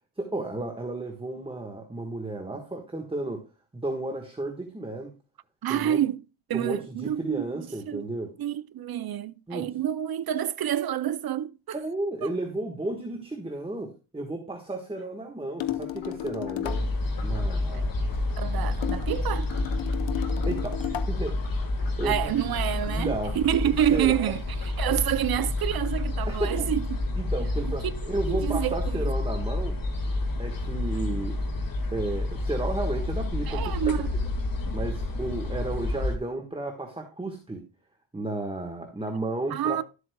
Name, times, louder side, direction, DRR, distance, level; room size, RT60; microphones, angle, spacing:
voice 1, 0.2-3.4 3.7-5.1 5.7-6.0 6.5-8.3 9.5-9.7 11.7-16.8 17.2-17.9 20.5-22.3 22.9-23.3 23.9-24.3 26.3-26.7 27.2-29.8 30.4-31.4 31.9-33.9 34.7-37.6 38.1-39.8, right 2 dB, 10° right, 1.4 m, -33 dB
voice 2, 5.6-6.2 6.5-8.0 8.4-11.8 12.2-12.3 17.7-17.8 18.4-19.5 22.0-24.4 24.8-27.0 27.6-27.9 28.3-29.1 33.5-34.1 39.5-39.8, right 10 dB, 50° right, 0.6 m, -28 dB
sound 1, 15.6-17.0 18.8-21.2, left 12 dB, 65° left, 0.9 m, -33 dB
Frog, 15.8-26.4, left 3 dB, 85° left, 3.4 m, -48 dB
sound 2, 16.6-36.2, left 2 dB, 45° left, 1.9 m, -29 dB
12.0 x 8.1 x 2.2 m
wide cardioid pair, 120°, 48 cm